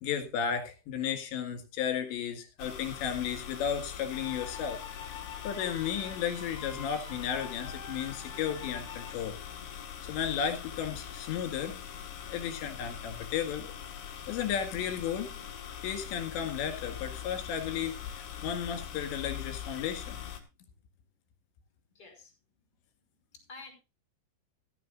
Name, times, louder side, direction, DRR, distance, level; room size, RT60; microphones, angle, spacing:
voice 1, 0.0-4.8 5.4-9.4 10.1-11.8 12.3-13.7 14.3-15.3 15.8-20.2, left 8 dB, 70° left, 5 dB, 4.0 m, -34 dB
sound 1, 2.6-20.4, left 9 dB, 55° left, 2.6 m, -42 dB
sound 2, 4.1-9.1, left 6 dB, 40° left, 1.4 m, -47 dB
voice 2, 21.9-22.3 23.3-23.7, left 3 dB, 20° left, 2 dB, 5.3 m, -53 dB
15.5 x 14.0 x 2.5 m, 0.28 s
omnidirectional pair, 5.4 m